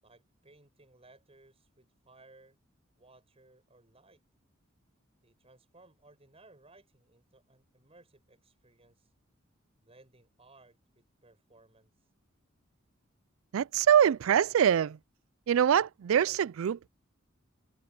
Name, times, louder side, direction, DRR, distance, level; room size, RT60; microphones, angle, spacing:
voice 1, 0.0-2.6 3.0-4.2 5.2-9.1 9.8-12.1, right 2 dB, 30° right, 8.0 m, -60 dB
voice 2, 13.5-15.0 15.5-16.9, right 9 dB, 90° right, 0.4 m, -24 dB
head